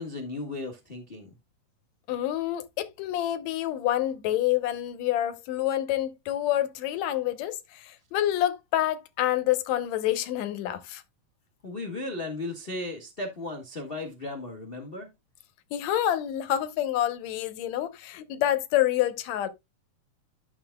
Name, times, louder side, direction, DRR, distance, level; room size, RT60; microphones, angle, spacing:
voice 1, 0.0-1.4 11.6-15.1, left 2 dB, 55° left, 0.6 m, -36 dB
voice 2, 2.1-11.0 15.7-19.5, left 12 dB, 75° left, 2.1 m, -27 dB
12.0 x 6.5 x 2.2 m
omnidirectional pair, 3.4 m